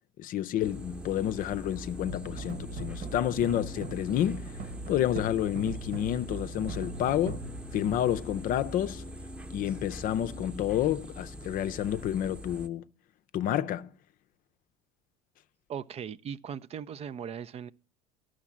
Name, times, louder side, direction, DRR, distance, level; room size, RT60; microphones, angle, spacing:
voice 1, 0.2-4.5 4.9-7.4 7.7-9.0 9.5-12.8 13.3-13.9, left 11 dB, 50° left, 0.6 m, -29 dB
sound 1, 0.6-12.7, equal, 5° right, 0.8 m, -43 dB
sound 2, 2.0-9.3, right 4 dB, 60° right, 1.2 m, -41 dB
voice 2, 15.7-17.7, right 8 dB, 35° right, 0.5 m, -38 dB
11.5 x 6.4 x 7.2 m
hypercardioid pair, 75°, 18 cm